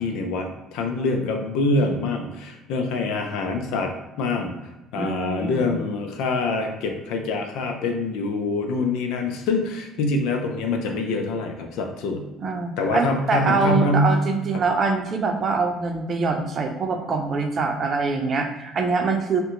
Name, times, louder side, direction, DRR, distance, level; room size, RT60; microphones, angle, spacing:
voice 1, 0.0-4.5 4.9-12.2 12.8-14.1, left 2 dB, 80° left, 4 dB, 0.5 m, -25 dB
voice 2, 4.9-5.8 12.4-19.4, right 4 dB, 45° right, 4 dB, 0.6 m, -24 dB
2.7 x 2.2 x 3.8 m, 0.97 s
supercardioid pair, 90°, 0 cm